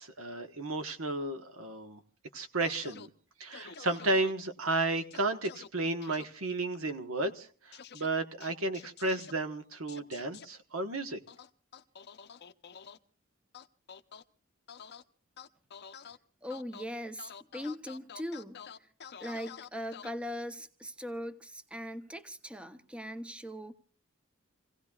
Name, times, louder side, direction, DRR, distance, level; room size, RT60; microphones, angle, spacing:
voice 1, 0.0-2.0 2.3-3.1 3.4-11.2, right 2 dB, 75° right, 1.4 m, -33 dB
sound 1, 2.6-3.1 3.5-4.3 5.1-5.7 6.0-6.2 7.7-8.1 8.4-9.3 9.9-10.5 11.3-13.0 13.5-14.2 14.7-15.0 15.4-16.2 16.5-16.8 17.2-20.1, left 7 dB, 55° left, 0.7 m, -48 dB
voice 2, 16.4-18.9 19.2-23.7, equal, 5° right, 0.7 m, -40 dB
28.5 x 16.5 x 2.4 m
head